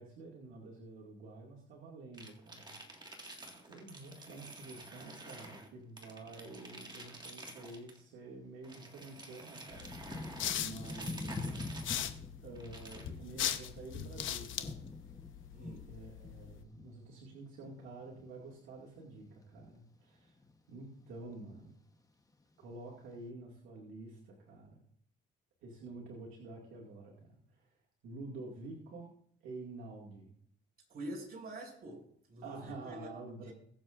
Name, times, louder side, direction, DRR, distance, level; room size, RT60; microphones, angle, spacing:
voice 1, 0.0-3.1 3.7-10.0 10.5-11.8 12.4-14.7 15.9-20.4 20.7-21.7 22.6-24.8 25.6-27.7 28.0-29.1 29.4-30.3 32.4-33.5, right 2 dB, 85° right, -3 dB, 2.3 m, -49 dB
sound 1, 2.1-5.7 6.0-8.0 8.6-12.1 12.6-13.1, right 2 dB, 20° right, 1.9 m, -50 dB
Thunder / Rain, 8.3-8.4 9.1-18.6 18.9-19.8 20.3-20.7 21.0-21.8 22.4-22.5, left 2 dB, 15° left, 1.1 m, -46 dB
sound 2, 9.7-16.6, left 10 dB, 80° left, 1.0 m, -41 dB
voice 2, 15.5-15.9 30.9-32.0 32.3-33.1 33.5-33.6, right 1 dB, 50° right, 0 dB, 5.4 m, -45 dB
21.5 x 7.4 x 2.6 m, 0.66 s
cardioid pair, 90°, 20 cm